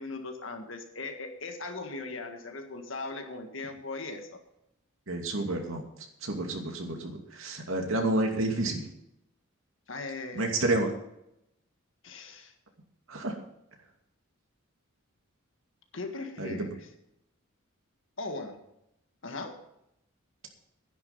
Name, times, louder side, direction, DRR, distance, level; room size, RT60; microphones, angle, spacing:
voice 1, 0.0-4.4 9.9-10.5 12.0-12.5 15.9-16.9 18.2-18.6 19.2-19.6, left 3 dB, 65° left, 5 dB, 1.7 m, -39 dB
voice 2, 5.1-5.8 6.2-8.8 10.3-10.9 13.1-13.3 16.4-16.7, right 2 dB, 80° right, 2 dB, 2.5 m, -29 dB
11.0 x 10.5 x 5.5 m, 0.81 s
head